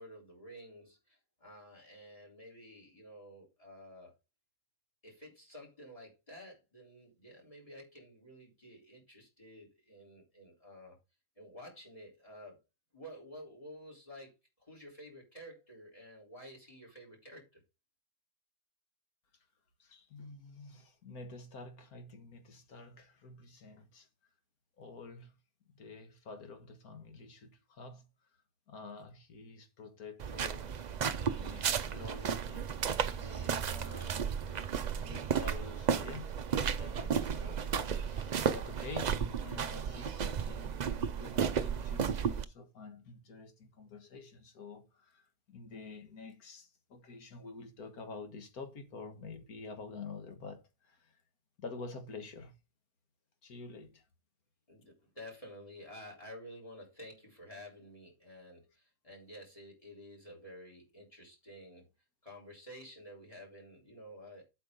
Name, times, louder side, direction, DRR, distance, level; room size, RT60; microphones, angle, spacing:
voice 1, 0.0-4.1 5.0-11.0 11.4-12.6 12.9-14.3 14.6-17.6 54.7-61.9 62.2-64.4, equal, 25° left, 3.9 m, -51 dB
voice 2, 19.8-24.1 24.8-25.3 25.8-28.1 28.7-34.6 35.0-40.8 41.2-51.1 51.6-52.5 53.4-54.0, left 4 dB, 80° left, 2.0 m, -49 dB
sound 1, 30.2-42.4, right 7 dB, 85° right, 0.3 m, -34 dB
8.3 x 5.4 x 5.2 m
omnidirectional pair, 1.5 m